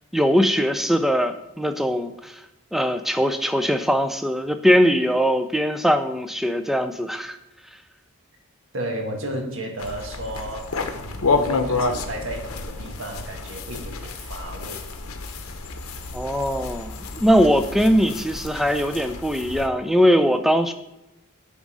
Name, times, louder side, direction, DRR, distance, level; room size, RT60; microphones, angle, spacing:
voice 1, 0.1-2.4 2.7-7.4 16.1-20.7, equal, ahead, 8 dB, 0.4 m, -21 dB
voice 2, 8.7-14.9, right 1 dB, 60° right, 2 dB, 1.5 m, -33 dB
sound 1, 9.8-19.7, left 3 dB, 80° left, 0.9 m, -29 dB
9.2 x 3.7 x 6.2 m, 0.91 s
head